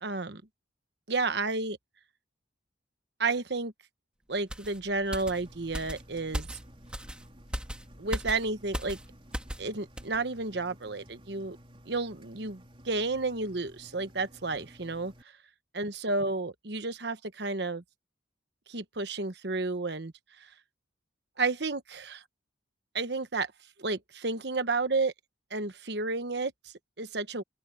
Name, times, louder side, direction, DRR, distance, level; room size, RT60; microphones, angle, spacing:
voice 1, 0.0-0.4 1.1-1.8 3.2-3.7 4.3-6.6 8.0-9.0 9.6-11.6 11.9-15.1 15.7-17.8 18.7-20.5 21.4-22.2 22.9-23.5 23.8-25.1 25.5-27.4, right 3 dB, 60° right, 1.2 m, -31 dB
sound 1, 4.5-9.7 10.0-10.2, equal, 5° right, 2.1 m, -38 dB
Engine, 5.1-15.2, equal, 30° right, 4.5 m, -55 dB
open air
head